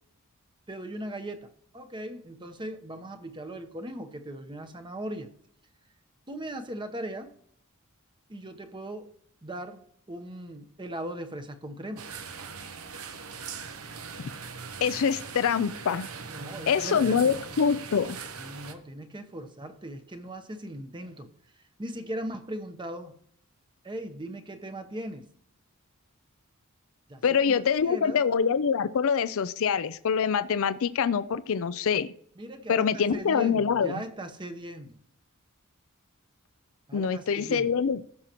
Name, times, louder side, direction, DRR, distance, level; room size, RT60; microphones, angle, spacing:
voice 1, 0.7-5.3 6.3-7.3 8.3-9.1 9.4-12.1 16.3-17.3 18.4-21.3 21.8-23.2 23.8-25.3 27.1-28.2 32.4-35.0 36.9-37.7, right 1 dB, 20° right, 7 dB, 0.9 m, -39 dB
sound 1, 12.0-18.7, right 5 dB, 80° right, 1.0 m, -40 dB
voice 2, 14.8-16.1 16.7-18.2 27.2-32.1 32.7-34.0 36.9-38.0, left 6 dB, 65° left, 14 dB, 0.4 m, -25 dB
15.0 x 6.3 x 3.0 m, 0.66 s
head